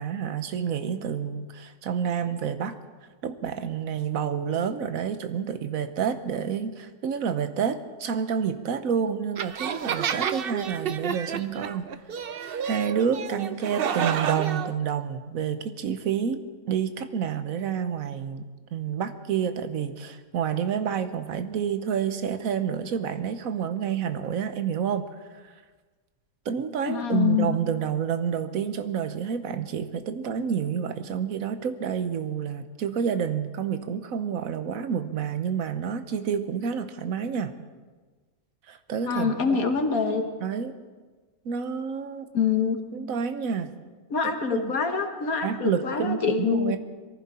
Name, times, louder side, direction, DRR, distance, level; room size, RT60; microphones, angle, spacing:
voice 1, 0.0-2.8 3.2-11.9 12.3-25.1 25.3-25.5 26.4-37.6 38.7-39.7 40.4-40.8 41.4-42.3 42.9-43.7 44.2-44.8 45.4-46.8, right 7 dB, 75° right, 10 dB, 1.4 m, -29 dB
sound 1, 9.4-14.7, right 7 dB, 50° right, 0.7 m, -30 dB
voice 2, 26.9-27.5 39.0-40.3 42.3-42.8 44.1-46.8, left 6 dB, 80° left, 5 dB, 1.8 m, -25 dB
22.5 x 15.0 x 4.3 m, 1.4 s
omnidirectional pair, 1.5 m